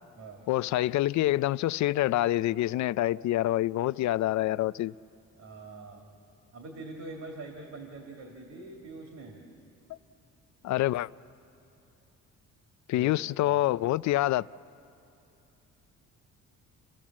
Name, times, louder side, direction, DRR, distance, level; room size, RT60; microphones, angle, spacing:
voice 1, 0.5-4.9 10.6-11.1 12.9-14.4, left 15 dB, 70° left, 0.4 m, -26 dB
voice 2, 5.4-6.1 6.5-9.5 12.9-13.1 13.5-13.6, right 2 dB, 65° right, 2.7 m, -44 dB
29.5 x 15.0 x 7.4 m
cardioid pair, 90°, 30 cm